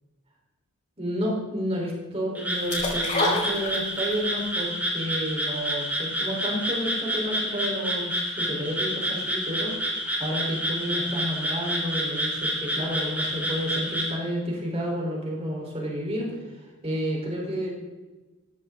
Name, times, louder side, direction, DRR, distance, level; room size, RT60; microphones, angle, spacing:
voice 1, 1.0-16.4 16.8-17.7, equal, 25° right, -2 dB, 5.0 m, -30 dB
Frog, 2.3-14.1, equal, 5° right, 3.8 m, -29 dB
sound 1, 2.7-4.2 4.6-4.7, left 2 dB, 35° left, 4.6 m, -26 dB
16.5 x 16.0 x 4.1 m, 1.2 s
head